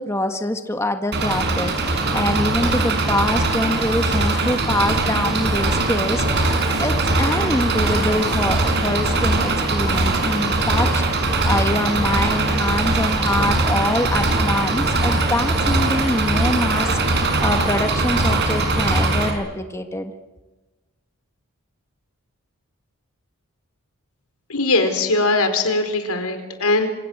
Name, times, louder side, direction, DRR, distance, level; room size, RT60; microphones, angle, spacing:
voice 1, 0.0-6.5 6.8-20.1, left 1 dB, 10° left, 6 dB, 1.6 m, -25 dB
Engine, 1.1-19.3, right 2 dB, 50° right, 6.1 m, -20 dB
voice 2, 24.5-26.9, left 2 dB, 85° left, 8 dB, 4.8 m, -20 dB
28.0 x 26.5 x 8.1 m, 1.2 s
head